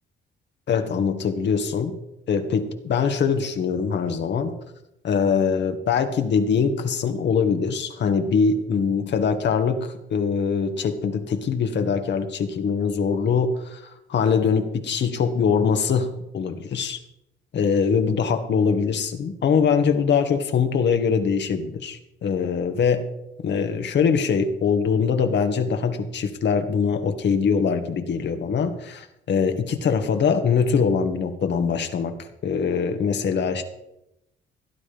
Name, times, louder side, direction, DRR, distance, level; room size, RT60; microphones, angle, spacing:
voice 1, 0.7-2.0 2.3-4.5 5.0-17.0 17.5-23.0 23.4-32.1 32.4-33.6, left 6 dB, 60° left, 7 dB, 1.8 m, -23 dB
17.5 x 9.9 x 5.3 m, 0.86 s
cardioid pair, 90°, 20 cm